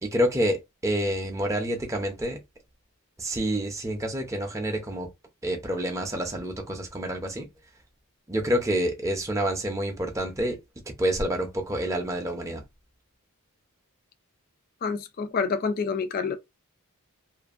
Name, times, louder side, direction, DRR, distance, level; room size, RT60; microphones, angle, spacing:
voice 1, 0.0-2.4 3.2-5.1 5.4-7.5 8.3-10.6 11.0-12.6, equal, 15° right, 0.6 m, -28 dB
voice 2, 14.8-16.4, left 5 dB, 40° left, 0.3 m, -28 dB
2.6 x 2.5 x 2.4 m
head